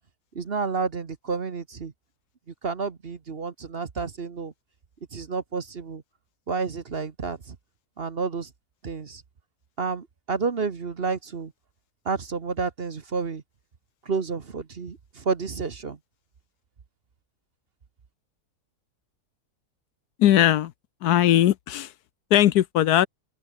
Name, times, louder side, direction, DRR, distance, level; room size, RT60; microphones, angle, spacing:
voice 1, 0.3-1.9 2.6-4.5 5.1-6.0 6.5-7.5 8.0-8.5 8.8-9.2 9.8-11.5 12.0-13.4 14.1-16.0, right 4 dB, 40° right, 1.3 m, -30 dB
voice 2, 20.2-20.7 21.0-21.9 22.3-23.1, left 12 dB, 75° left, 1.2 m, -19 dB
open air
omnidirectional pair, 1.7 m